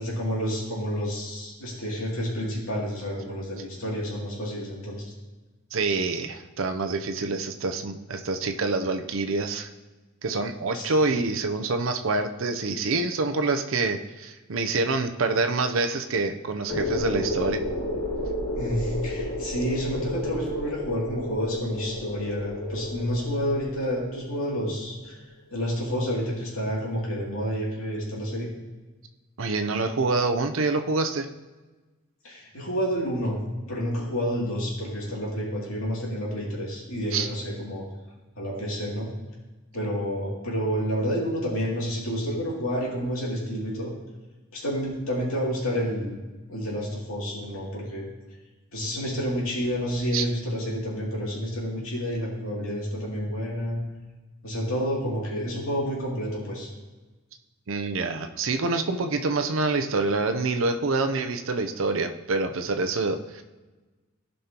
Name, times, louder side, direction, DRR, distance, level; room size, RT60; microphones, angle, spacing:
voice 1, 0.0-5.1 10.7-10.9 18.5-25.2 25.5-28.5 32.2-33.4 33.7-37.8 38.4-39.1 39.7-43.9 44.5-46.2 46.5-48.1 48.7-53.8 54.4-56.7, equal, 75° left, -4 dB, 2.7 m, -29 dB
voice 2, 5.7-9.7 10.2-17.6 29.4-31.3 37.1-37.3 50.1-50.2 57.7-63.4, right 3 dB, 65° right, 6 dB, 0.6 m, -26 dB
sound 1, 16.7-24.5, left 1 dB, 40° left, 1.9 m, -32 dB
15.0 x 5.4 x 2.9 m, 1.2 s
head